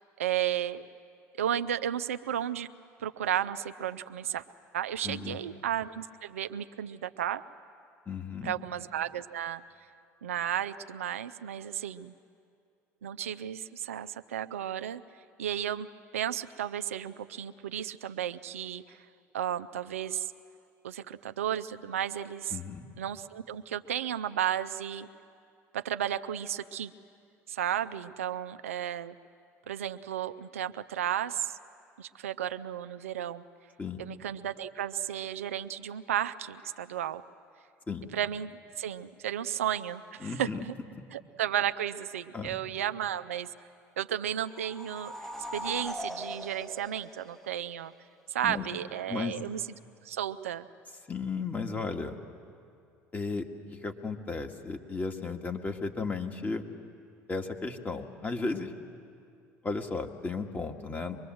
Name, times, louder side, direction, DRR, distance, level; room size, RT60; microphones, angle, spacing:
voice 1, 0.2-0.9 1.4-2.7 3.0-4.4 4.7-7.4 8.4-9.6 10.2-12.1 13.0-15.0 15.4-15.9 16.1-19.0 19.3-20.3 20.8-22.6 23.0-25.1 25.7-26.9 27.5-29.2 29.7-31.6 32.0-33.4 34.0-37.2 38.1-40.7 41.1-43.5 44.0-47.9 48.3-49.6 50.0-50.7, right 10 dB, 90° right, 11 dB, 0.5 m, -33 dB
voice 2, 5.0-5.4 8.1-8.5 22.5-22.9 33.8-34.0 37.9-38.1 40.2-40.6 42.3-42.6 48.4-48.7 49.1-49.4 51.1-52.2 53.1-53.5 53.7-56.6 57.3-58.7 59.6-61.2, left 4 dB, 25° left, 3 dB, 1.9 m, -34 dB
sound 1, 44.4-47.9, equal, 5° left, 1.2 m, -40 dB
24.5 x 21.5 x 7.8 m, 2.4 s
hypercardioid pair, 70°, 7 cm